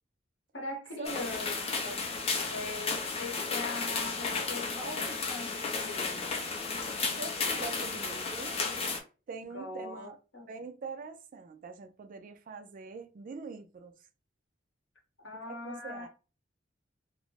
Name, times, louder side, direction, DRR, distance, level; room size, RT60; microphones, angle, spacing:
voice 1, 0.5-2.0 2.5-6.3 9.5-10.5 15.2-16.1, left 2 dB, 70° left, 0.9 m, -41 dB
sound 1, 1.0-9.0, left 4 dB, 30° left, 0.5 m, -33 dB
voice 2, 7.1-8.6 9.3-10.2 10.5-14.0 15.4-16.1, right 4 dB, 45° right, 0.3 m, -43 dB
2.5 x 2.0 x 3.1 m
head